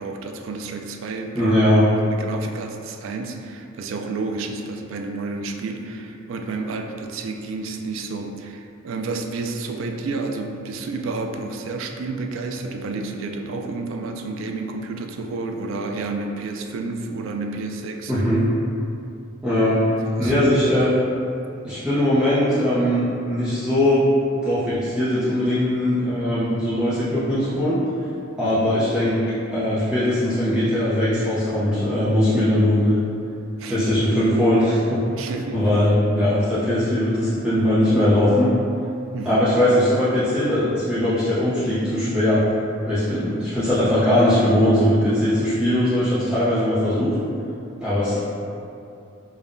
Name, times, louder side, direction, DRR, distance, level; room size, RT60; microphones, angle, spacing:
voice 1, 0.0-1.6 2.1-18.3 20.0-20.3 28.4-28.6 33.6-34.1 35.2-35.7 39.1-39.4, right 3 dB, 65° right, 4 dB, 0.3 m, -30 dB
voice 2, 1.3-1.9 18.1-18.4 19.4-19.8 20.2-20.9 21.6-24.0 24.3-27.8 28.4-33.0 33.6-35.0 35.5-38.5 39.2-42.4 42.9-47.1 47.8-48.2, left 1 dB, 5° right, -14 dB, 0.6 m, -20 dB
5.1 x 2.2 x 2.5 m, 2.6 s
head